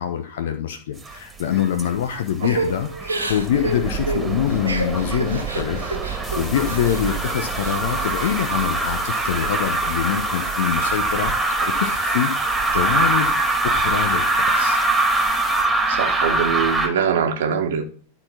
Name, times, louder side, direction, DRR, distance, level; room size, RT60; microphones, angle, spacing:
voice 1, 0.0-11.5 11.8-12.3 12.7-13.3 13.6-14.8, left 9 dB, 60° left, 1.0 m, -25 dB
sound 1, 1.0-1.9 2.2-16.9, right 2 dB, 10° right, 2.0 m, -23 dB
Crying sobbing / Breathing, 2.4-7.0 7.4-8.4 8.8-9.5, right 2 dB, 85° right, 1.6 m, -30 dB
sound 2, 6.2-15.7, left 2 dB, 15° left, 2.4 m, -38 dB
voice 2, 15.9-17.8, right 7 dB, 60° right, 1.4 m, -22 dB
12.0 x 4.2 x 5.7 m
figure-of-eight pair, 90°, 0 cm